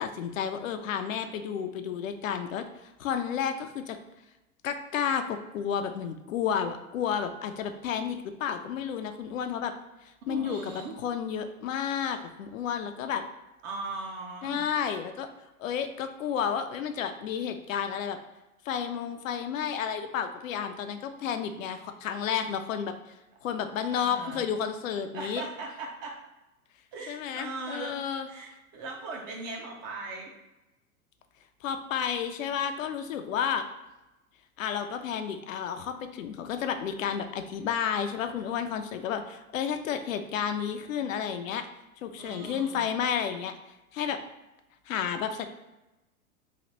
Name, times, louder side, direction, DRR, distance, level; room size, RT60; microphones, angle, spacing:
voice 1, 0.0-4.0 4.6-9.7 10.3-10.6 11.0-13.2 14.4-15.3 15.6-18.2 18.7-22.9 23.4-25.4 27.1-28.3 31.6-33.6 34.6-41.7 42.0-43.5 43.9-44.2 44.9-45.5, left 8 dB, 65° left, 8 dB, 0.5 m, -31 dB
voice 2, 10.3-11.0 13.6-14.6 23.9-24.5 25.1-26.2 26.9-28.0 28.3-30.3 42.2-42.9, right 3 dB, 25° right, 0 dB, 0.4 m, -39 dB
3.1 x 2.5 x 2.9 m, 0.98 s
figure-of-eight pair, 95°, 44 cm